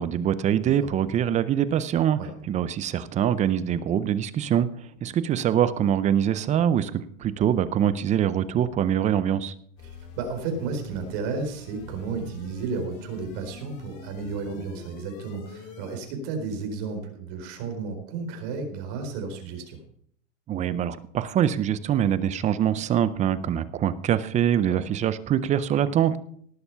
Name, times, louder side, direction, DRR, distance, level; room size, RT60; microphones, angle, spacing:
voice 1, 0.0-2.2 2.5-4.7 5.0-9.5 20.5-26.2, right 9 dB, 20° right, 16 dB, 0.5 m, -24 dB
sound 1, 9.8-16.0, left 5 dB, 45° left, 4.0 m, -45 dB
voice 2, 9.8-19.8 24.6-24.8, right 4 dB, 50° right, 5 dB, 4.4 m, -33 dB
18.0 x 7.0 x 5.6 m, 0.64 s
supercardioid pair, 135°, 39 cm